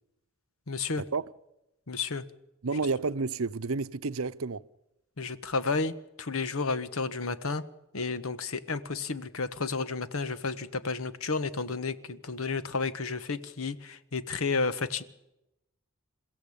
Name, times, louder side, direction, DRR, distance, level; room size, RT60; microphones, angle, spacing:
voice 1, 0.7-1.0 1.9-2.2 5.2-7.6 7.9-15.0, left 4 dB, 85° left, 1.3 m, -32 dB
voice 2, 2.6-4.7, right 4 dB, 80° right, 0.8 m, -30 dB
28.5 x 15.5 x 8.7 m
head